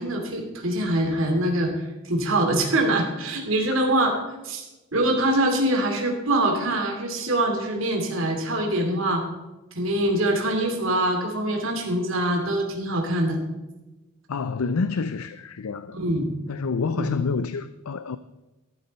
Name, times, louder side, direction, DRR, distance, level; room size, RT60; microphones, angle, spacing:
voice 1, 0.0-4.2 4.4-4.6 4.9-9.2 9.8-13.4 15.9-16.3 16.9-17.1, right 1 dB, 65° right, 2.9 m, -24 dB
voice 2, 14.3-16.0 16.5-18.2, left 4 dB, 85° left, 0.5 m, -28 dB
13.5 x 12.0 x 4.3 m
head